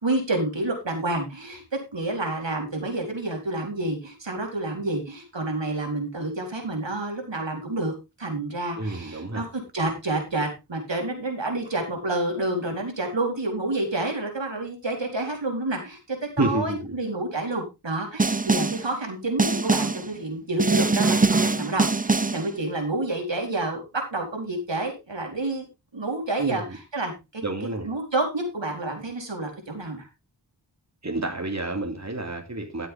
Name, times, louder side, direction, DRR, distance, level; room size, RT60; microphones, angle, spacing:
voice 1, 0.0-7.9 8.2-25.7 25.9-30.1, right 2 dB, 80° right, 2 dB, 4.3 m, -29 dB
voice 2, 8.8-9.4 16.4-16.9 26.4-26.8 27.4-27.9 31.0-32.9, right 2 dB, 40° right, 3 dB, 3.2 m, -29 dB
Snare drum, 18.2-18.9 19.4-20.1 20.6-22.5, right 3 dB, 20° right, 0.6 m, -22 dB
14.0 x 7.9 x 3.7 m, 0.26 s
wide cardioid pair, 50°, 43 cm